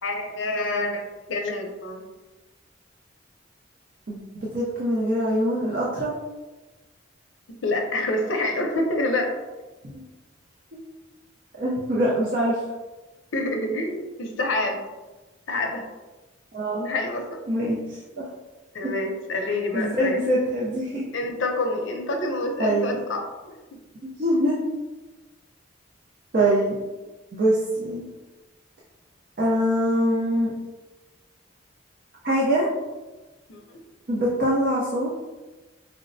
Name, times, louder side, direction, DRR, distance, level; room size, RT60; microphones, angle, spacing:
voice 1, 0.0-2.0 7.6-9.4 13.3-14.8 15.5-15.9 16.8-17.8 18.7-20.2 21.1-23.3 33.5-33.6, left 2 dB, 80° left, 3 dB, 0.6 m, -27 dB
voice 2, 4.1-6.1 9.8-10.0 11.6-12.6 16.5-16.9 17.5-18.3 18.8-18.9 19.5-21.1 22.6-23.0 24.0-24.6 26.3-26.8 27.3-28.0 29.4-30.5 32.2-32.7 34.1-35.1, right 1 dB, 50° right, -5 dB, 0.5 m, -24 dB
4.4 x 2.0 x 2.6 m, 1.2 s
head